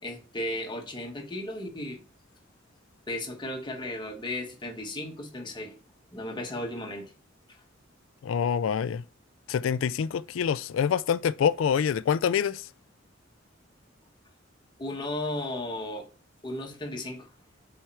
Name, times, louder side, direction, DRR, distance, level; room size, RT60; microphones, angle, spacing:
voice 1, 0.0-2.0 3.1-5.8 6.1-7.1 7.5-7.6 14.8-16.1 16.4-17.3, left 1 dB, 25° left, 1.3 m, -35 dB
voice 2, 8.2-9.0 9.5-12.6, left 7 dB, 85° left, 0.3 m, -26 dB
8.1 x 4.5 x 4.5 m
head